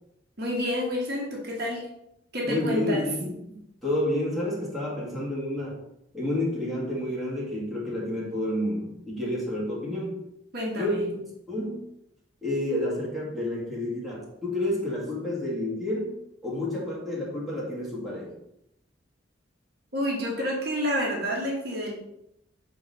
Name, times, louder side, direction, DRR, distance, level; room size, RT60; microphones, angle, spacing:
voice 1, 0.4-1.9 2.3-3.0 10.5-11.0 19.9-21.9, equal, 60° right, -1 dB, 1.4 m, -29 dB
voice 2, 2.4-5.8 6.1-10.2 10.8-11.2 11.5-11.9 12.4-18.3, left 1 dB, ahead, -6 dB, 1.8 m, -30 dB
6.0 x 3.9 x 4.1 m, 0.81 s
head